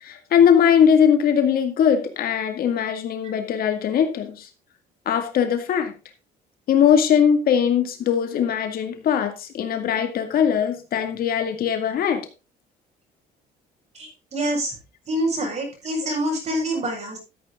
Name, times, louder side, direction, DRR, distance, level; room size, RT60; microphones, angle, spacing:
voice 1, 0.0-4.5 5.1-5.9 6.7-12.2, left 8 dB, 60° left, 7 dB, 2.1 m, -20 dB
voice 2, 13.9-14.7 15.1-17.2, right 1 dB, 40° right, 0 dB, 7.7 m, -26 dB
13.5 x 8.5 x 3.7 m, 0.29 s
cardioid pair, 110°, 17 cm